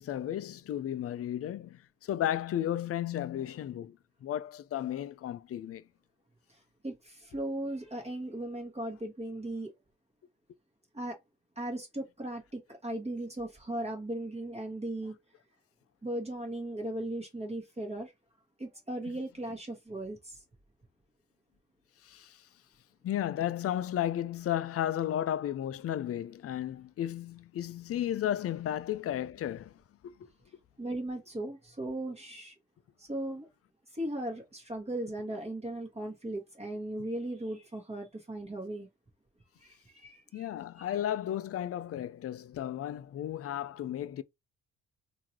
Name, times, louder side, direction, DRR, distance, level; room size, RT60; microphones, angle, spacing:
voice 1, 0.0-5.8 22.0-22.4 23.0-29.7 30.0-30.3 40.3-44.2, left 11 dB, 50° left, 0.5 m, -34 dB
voice 2, 6.5-9.7 10.9-11.2 11.5-15.2 16.0-18.1 18.6-20.4 30.8-32.5 33.0-33.5 33.9-38.9 39.6-40.5 40.8-40.9, right 1 dB, 20° right, 1.6 m, -37 dB
3.7 x 2.9 x 3.0 m
cardioid pair, 90°, 30 cm